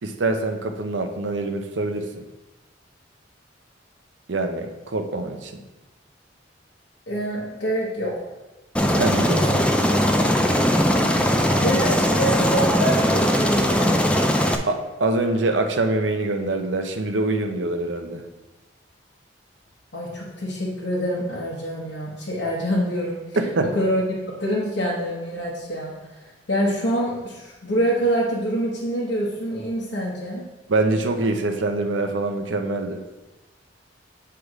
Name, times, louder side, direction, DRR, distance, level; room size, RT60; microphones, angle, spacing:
voice 1, 0.0-2.2 4.3-5.6 9.0-9.7 14.7-18.2 23.4-23.7 30.7-33.0, right 2 dB, 85° right, 5 dB, 0.7 m, -24 dB
voice 2, 7.1-8.2 11.6-14.0 19.9-23.2 23.7-26.0 26.5-30.4, equal, 70° left, -6 dB, 1.1 m, -25 dB
Aircraft, 8.7-14.5, equal, 5° left, 0.4 m, -20 dB
7.9 x 3.4 x 4.8 m, 1.1 s
head